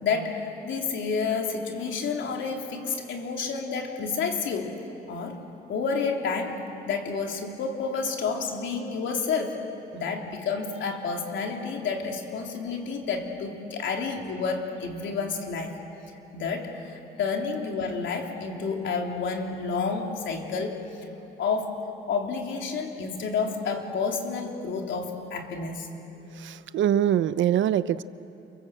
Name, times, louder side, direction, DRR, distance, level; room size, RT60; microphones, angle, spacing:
voice 1, 0.0-4.8 5.1-5.4 5.7-9.6 9.9-15.7 16.3-21.1 21.4-21.7 22.1-25.9, left 5 dB, 70° left, 2 dB, 3.5 m, -30 dB
voice 2, 26.3-28.0, right 10 dB, 70° right, 15 dB, 0.8 m, -24 dB
28.5 x 24.5 x 7.8 m, 2.8 s
cardioid pair, 90°, 20 cm